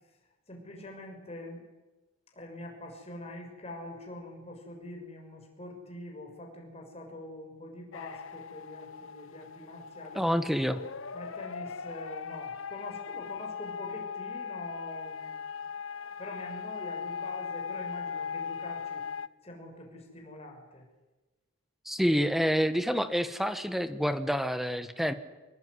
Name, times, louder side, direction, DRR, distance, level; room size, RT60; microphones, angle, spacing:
voice 1, 0.5-1.6 2.3-10.2 11.1-15.6 15.9-19.0 19.4-20.9, left 1 dB, 30° left, 2 dB, 6.5 m, -44 dB
sound 1, 7.9-19.3, left 6 dB, 70° left, 0.8 m, -39 dB
voice 2, 10.1-10.8 21.8-25.1, equal, ahead, 11 dB, 1.3 m, -28 dB
26.5 x 21.5 x 9.7 m, 1.2 s
head